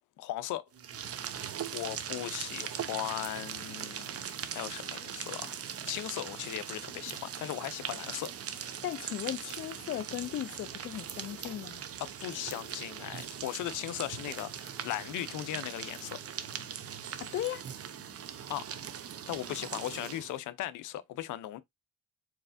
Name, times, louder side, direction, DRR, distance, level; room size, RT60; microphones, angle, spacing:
voice 1, 0.2-0.7 1.7-4.1 4.5-8.8 12.0-16.2 18.5-18.7 19.3-21.6, left 14 dB, 85° left, 0.6 m, -38 dB
sound 1, 0.7-20.4, right 8 dB, 50° right, 0.8 m, -40 dB
voice 2, 8.8-11.8 17.2-17.6, left 12 dB, 45° left, 0.4 m, -37 dB
4.7 x 4.2 x 2.5 m
cardioid pair, 90°, 30 cm